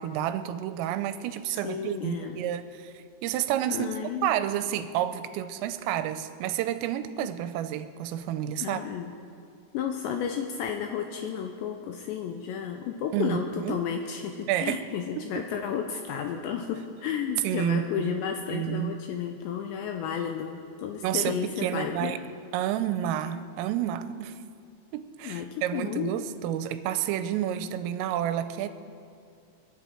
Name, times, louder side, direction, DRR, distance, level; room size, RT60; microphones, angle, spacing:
voice 1, 0.0-3.9 4.2-8.8 13.1-13.8 14.5-14.9 15.2-15.3 17.4-18.2 18.5-18.9 21.0-22.2 22.5-24.4 24.9-28.7, right 11 dB, 85° right, 11 dB, 3.3 m, -30 dB
voice 2, 1.5-2.4 3.7-4.3 8.6-9.1 9.7-22.2 25.2-26.1, left 8 dB, 85° left, 4 dB, 2.6 m, -32 dB
29.5 x 10.5 x 4.5 m, 2.5 s
omnidirectional pair, 5.8 m